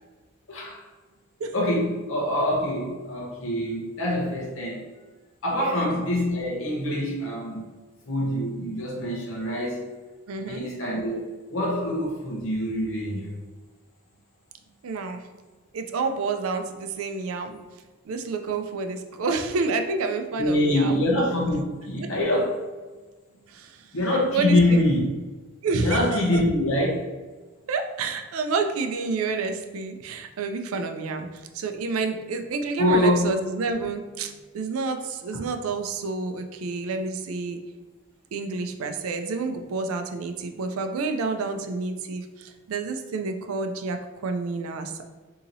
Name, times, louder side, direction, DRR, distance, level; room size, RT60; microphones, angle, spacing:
voice 1, 0.5-0.8 1.5-4.8 5.4-7.6 8.1-9.9 10.5-11.2 11.5-13.3 20.4-22.6 23.9-25.1 25.8-27.0 32.8-33.3, left 1 dB, 65° left, -4 dB, 0.7 m, -24 dB
voice 2, 5.5-5.9 10.3-10.7 14.8-15.2 15.7-17.6 18.1-21.0 22.0-22.1 23.5-23.8 24.3-24.8 25.6-26.4 27.7-31.3 31.5-37.6 38.3-44.0 44.2-45.0, right 4 dB, 90° right, 6 dB, 0.4 m, -29 dB
2.8 x 2.7 x 3.9 m, 1.3 s
head